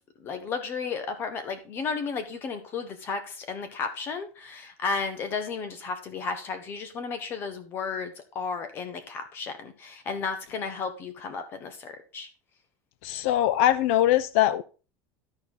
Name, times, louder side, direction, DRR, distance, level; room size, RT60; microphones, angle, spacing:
voice 1, 0.2-12.3, left 5 dB, 30° left, 1.3 m, -33 dB
voice 2, 13.0-14.6, left 12 dB, 70° left, 0.5 m, -22 dB
13.0 x 4.4 x 3.9 m
cardioid pair, 170°, 8 cm